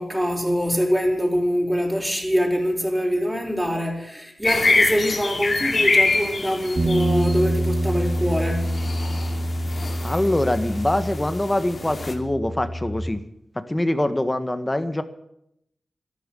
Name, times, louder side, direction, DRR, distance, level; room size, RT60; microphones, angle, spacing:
voice 1, 0.0-8.8, equal, 5° right, 4.3 m, -24 dB
sound 1, 4.4-12.1, left 3 dB, 55° left, 2.7 m, -25 dB
Bass guitar, 6.8-13.0, right 1 dB, 60° right, 3.9 m, -26 dB
voice 2, 10.0-13.2 13.7-15.0, left 1 dB, 20° left, 1.7 m, -24 dB
13.0 x 11.5 x 9.2 m
cardioid pair, 50°, 0 cm